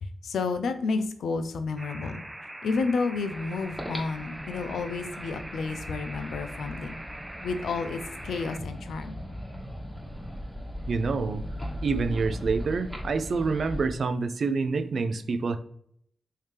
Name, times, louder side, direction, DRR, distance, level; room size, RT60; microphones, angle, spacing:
voice 1, 0.0-2.2 2.6-7.0 7.4-9.1, left 4 dB, 85° left, 8 dB, 0.3 m, -31 dB
sound 1, 1.8-8.6, right 1 dB, 15° right, 0.5 m, -42 dB
breath and wind, 3.3-13.9, equal, 5° left, 1.2 m, -38 dB
voice 2, 10.9-11.4 11.8-15.6, right 4 dB, 70° right, 9 dB, 0.3 m, -27 dB
3.3 x 2.7 x 3.2 m, 0.67 s
supercardioid pair, 40°, 0 cm